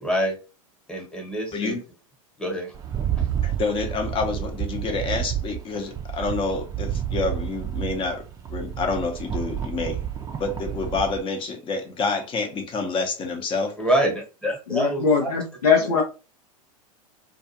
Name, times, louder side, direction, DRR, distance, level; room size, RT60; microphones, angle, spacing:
voice 1, 0.0-0.4 0.9-1.8 2.4-2.7 3.2-3.3 13.8-15.3 15.8-16.0, equal, 5° left, 1.1 m, -26 dB
Rattle, 2.7-11.2, right 10 dB, 20° right, 0.5 m, -30 dB
voice 2, 3.4-8.2 8.5-10.0 10.4-13.8, left 4 dB, 30° left, 0.7 m, -28 dB
voice 3, 14.7-16.0, left 5 dB, 90° left, 0.6 m, -21 dB
2.4 x 2.3 x 2.8 m
hypercardioid pair, 100°, 19 cm